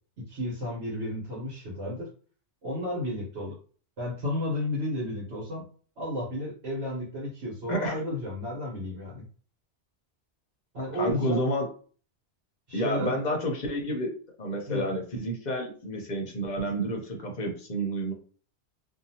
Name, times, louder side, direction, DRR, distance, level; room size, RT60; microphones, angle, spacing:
voice 1, 0.2-2.1 2.6-3.5 4.0-5.6 6.0-9.2 10.7-11.4 12.7-13.2 14.7-14.8, left 1 dB, 70° right, -6 dB, 1.3 m, -32 dB
voice 2, 7.7-8.0 10.9-11.7 12.7-14.1 14.4-18.1, equal, 45° left, 1 dB, 0.7 m, -30 dB
2.6 x 2.3 x 2.7 m, 0.42 s
omnidirectional pair, 1.2 m